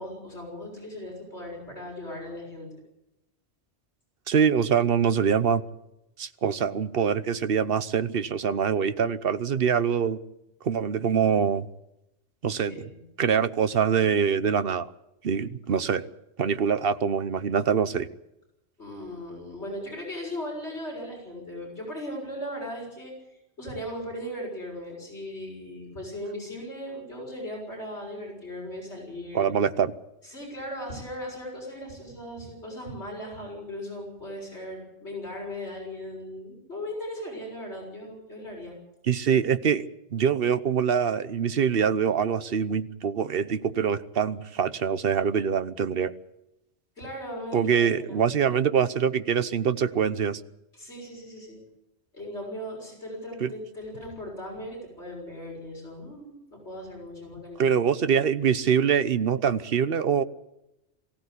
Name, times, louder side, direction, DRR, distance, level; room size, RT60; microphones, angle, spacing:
voice 1, 0.0-2.7 12.5-13.0 18.8-29.5 30.2-38.8 47.0-48.3 50.7-51.6 52.1-57.8, left 1 dB, 70° left, -1 dB, 6.9 m, -38 dB
voice 2, 4.3-5.6 6.2-10.2 10.6-11.7 12.4-12.8 13.2-14.9 15.2-16.1 16.4-18.1 29.3-29.9 39.1-46.1 47.5-50.4 53.4-53.5 57.6-60.2, right 7 dB, 55° right, 13 dB, 1.1 m, -24 dB
23.0 x 15.5 x 8.4 m, 0.87 s
omnidirectional pair, 1.2 m